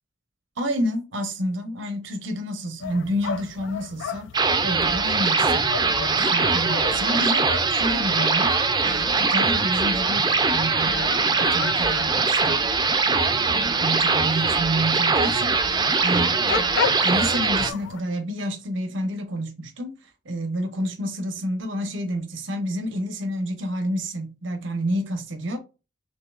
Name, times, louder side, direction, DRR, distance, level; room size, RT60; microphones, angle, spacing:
voice 1, 0.6-4.3 4.6-8.6 8.8-12.7 13.0-16.7 17.0-19.9 20.2-25.6, equal, 85° right, 0.9 m, -29 dB
sound 1, 2.8-18.0, left 7 dB, 70° left, 0.3 m, -35 dB
sound 2, 4.3-17.7, right 4 dB, 20° right, 0.4 m, -22 dB
6.4 x 2.8 x 2.4 m
head